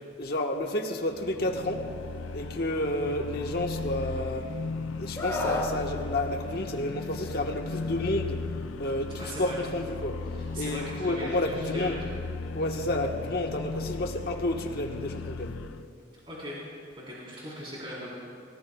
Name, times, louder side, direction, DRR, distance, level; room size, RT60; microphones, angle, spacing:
voice 1, 0.2-1.8 2.3-4.5 5.0-8.4 8.8-10.2 10.6-12.0 12.5-15.5, left 1 dB, 50° left, 3 dB, 1.3 m, -30 dB
sound 1, 1.1-15.9, left 4 dB, 85° left, 0.5 m, -36 dB
Screaming, 5.2-5.7 7.2-7.4, left 1 dB, 15° left, 2.1 m, -30 dB
voice 2, 9.2-9.6 10.3-12.0 16.3-16.6 17.0-18.1, equal, 25° right, -7 dB, 3.9 m, -39 dB
30.0 x 17.5 x 2.3 m, 2.4 s
head